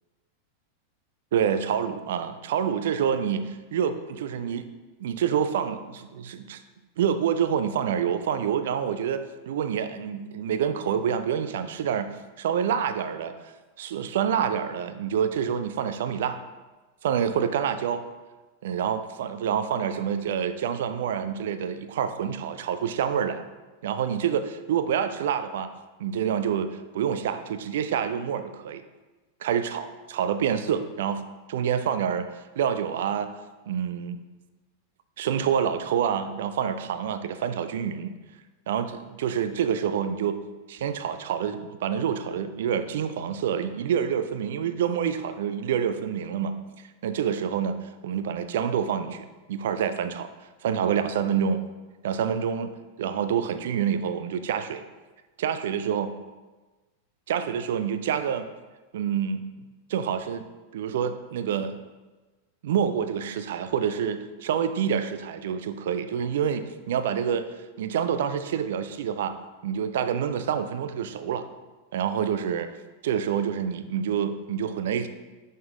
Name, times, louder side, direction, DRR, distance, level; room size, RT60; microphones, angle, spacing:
voice 1, 1.3-4.7 5.0-6.6 7.0-12.1 12.4-13.4 13.8-16.4 17.0-18.0 18.6-23.4 23.8-25.7 26.0-28.8 29.4-31.2 31.5-32.3 32.6-33.3 33.7-34.2 35.2-38.1 38.7-40.4 40.7-46.6 47.0-47.7 48.0-50.3 50.6-51.6 52.0-52.7 53.0-54.8 55.4-56.1 57.3-58.5 58.9-59.4 59.9-60.5 60.7-61.8 62.6-67.4 67.8-69.3 69.6-71.4 71.9-72.7 73.0-75.1, right 8 dB, 55° right, 10 dB, 0.5 m, -27 dB
6.0 x 5.5 x 3.7 m, 1.2 s
figure-of-eight pair, 90°, 0 cm